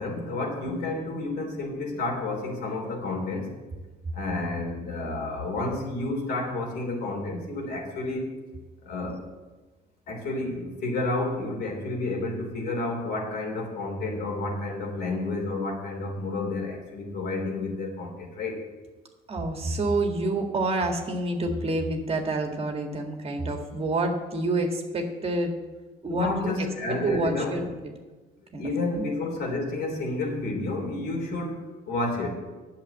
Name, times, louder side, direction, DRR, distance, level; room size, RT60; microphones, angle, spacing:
voice 1, 0.0-3.6 4.1-8.3 8.8-9.2 10.1-18.6 26.1-27.6 28.6-32.3, left 2 dB, 75° left, 0 dB, 3.4 m, -30 dB
voice 2, 19.3-25.6 26.0-27.9 28.5-28.6 28.9-29.0, right 2 dB, 35° right, 4 dB, 1.7 m, -28 dB
9.3 x 7.3 x 8.2 m, 1.2 s
cardioid pair, 110°, 17 cm